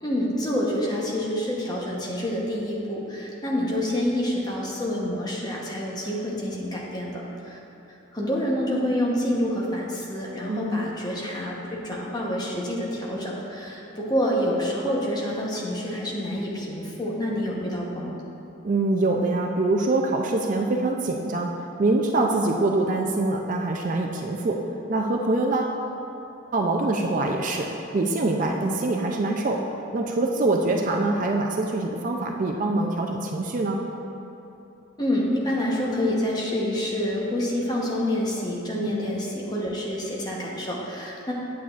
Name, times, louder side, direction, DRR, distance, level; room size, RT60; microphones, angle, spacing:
voice 1, 0.0-7.6 8.1-18.2 35.0-41.3, equal, 20° left, -3 dB, 0.9 m, -27 dB
voice 2, 10.5-10.8 18.6-21.5 21.8-24.6 24.9-25.8 26.5-27.7 27.9-29.6 29.9-33.8, right 2 dB, 35° right, 1 dB, 0.4 m, -24 dB
8.4 x 8.3 x 2.4 m, 2.9 s
head